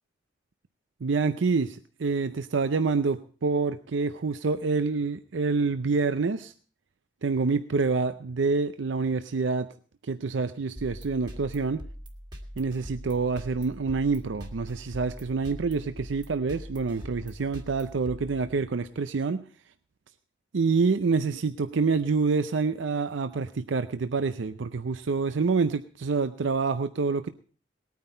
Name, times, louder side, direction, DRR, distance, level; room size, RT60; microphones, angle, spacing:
voice 1, 1.0-6.5 7.2-9.7 10.0-11.8 12.6-19.4 20.5-27.3, right 4 dB, 75° right, 11 dB, 0.5 m, -27 dB
sound 1, 10.8-18.9, equal, 25° right, 1.9 m, -43 dB
19.5 x 9.4 x 4.3 m, 0.40 s
head